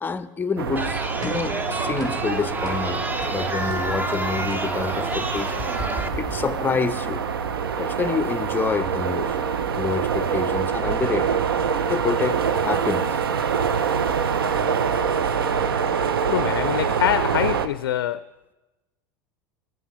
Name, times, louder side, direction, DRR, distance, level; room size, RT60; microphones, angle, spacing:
voice 1, 0.0-3.0 3.3-5.6 6.2-7.2 7.8-9.4 9.7-11.4 11.9-13.2, left 5 dB, 15° left, 12 dB, 0.6 m, -27 dB
sound 1, 0.6-17.7, right 6 dB, 90° right, 0.5 m, -25 dB
Chatter, 0.8-6.1, right 1 dB, 15° right, 0.7 m, -29 dB
sound 2, 1.2-1.6 2.0-2.3 2.6-2.9 3.2-3.4 3.7-7.0, equal, 35° right, 3.8 m, -37 dB
voice 2, 16.3-18.2, left 12 dB, 80° left, 13 dB, 0.4 m, -24 dB
14.5 x 10.0 x 3.1 m, 1.1 s
hypercardioid pair, 90°, 12 cm